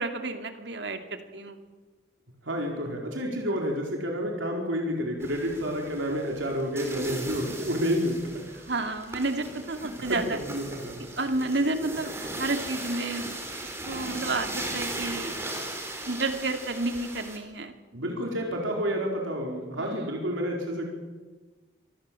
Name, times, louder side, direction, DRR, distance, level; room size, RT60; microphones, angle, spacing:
voice 1, 0.0-1.6 8.7-10.4 11.2-13.3 13.9-15.3 16.1-17.7 19.8-20.1, right 2 dB, 60° right, 6 dB, 2.6 m, -30 dB
voice 2, 2.4-8.2 10.1-11.0 17.9-20.9, equal, 85° right, 0 dB, 4.6 m, -29 dB
sound 1, 5.2-17.4, right 1 dB, 15° right, 4.5 m, -38 dB
27.0 x 22.0 x 7.7 m, 1.3 s
head